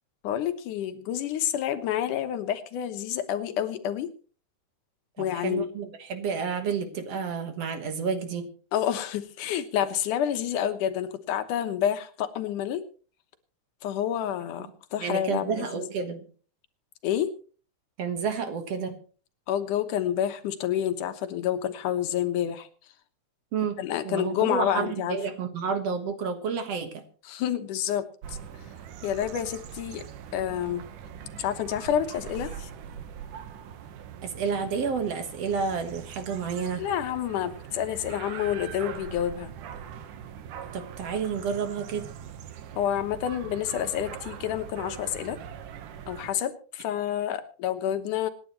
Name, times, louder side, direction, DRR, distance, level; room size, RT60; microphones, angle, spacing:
voice 1, 0.2-4.1 5.2-5.7 8.7-12.8 13.8-15.8 17.0-17.3 19.5-22.7 23.8-25.2 27.3-28.4 29.0-30.0 30.3-30.8 31.4-32.7 36.8-39.5 42.8-45.4 46.1-48.3, left 10 dB, 90° left, 9 dB, 2.7 m, -29 dB
voice 2, 5.2-8.5 14.6-14.7 15.0-16.2 18.0-19.0 23.5-23.8 24.0-27.0 34.2-36.9 40.7-42.1, right 6 dB, 60° right, 8 dB, 2.3 m, -30 dB
sound 1, 28.2-46.3, right 8 dB, 90° right, 2.7 m, -42 dB
26.5 x 10.0 x 3.1 m, 0.39 s
omnidirectional pair, 3.5 m